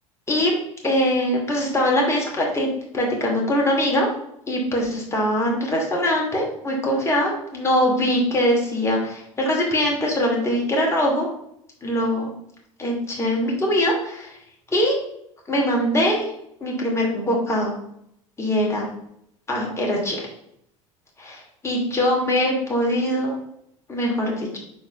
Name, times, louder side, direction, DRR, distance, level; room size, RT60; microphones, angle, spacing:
voice 1, 0.8-2.7 2.9-4.1 4.5-11.3 11.8-12.3 12.8-14.3 14.7-15.1 15.5-16.3 16.6-17.7 18.4-18.9 19.5-20.3 21.2-21.4 21.6-23.4 23.9-24.6, equal, 15° left, -2 dB, 2.6 m, -22 dB
4.7 x 4.2 x 5.6 m, 0.74 s
hypercardioid pair, 80°, 17 cm